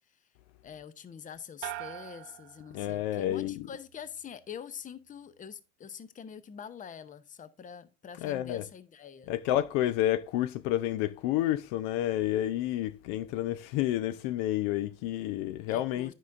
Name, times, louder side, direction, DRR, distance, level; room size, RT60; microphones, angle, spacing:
voice 1, 0.6-9.3 15.7-16.1, left 7 dB, 20° left, 0.6 m, -45 dB
sound 1, 1.6-3.4 3.8-4.3, right 15 dB, 60° right, 0.5 m, -44 dB
voice 2, 2.7-3.7 8.2-8.6 9.3-16.1, left 13 dB, 60° left, 0.5 m, -30 dB
9.4 x 5.4 x 2.5 m
hypercardioid pair, 80°, 36 cm